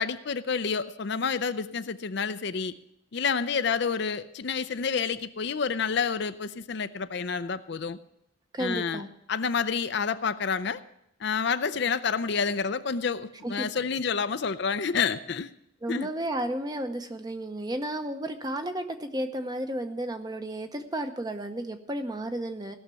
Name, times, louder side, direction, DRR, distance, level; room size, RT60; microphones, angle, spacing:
voice 1, 0.0-2.7 3.1-8.0 8.6-9.0 9.3-10.8 11.2-15.5 15.9-16.1, left 5 dB, 55° left, 12 dB, 0.5 m, -29 dB
voice 2, 8.5-9.1 13.4-13.7 15.8-22.7, right 1 dB, 20° right, 7 dB, 0.8 m, -33 dB
17.0 x 6.5 x 7.0 m, 0.80 s
head